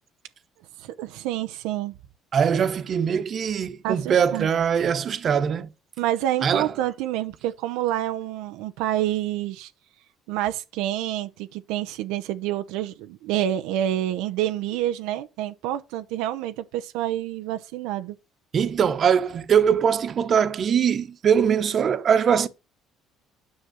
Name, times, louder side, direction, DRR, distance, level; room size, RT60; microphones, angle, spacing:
voice 1, 0.8-1.9 3.8-4.5 6.0-9.7 10.3-18.2, right 12 dB, 90° right, 0.7 m, -28 dB
voice 2, 2.3-5.7 6.4-6.7 18.5-22.5, right 7 dB, 45° right, 1.1 m, -22 dB
9.6 x 5.9 x 6.2 m
cardioid pair, 100°, 0 cm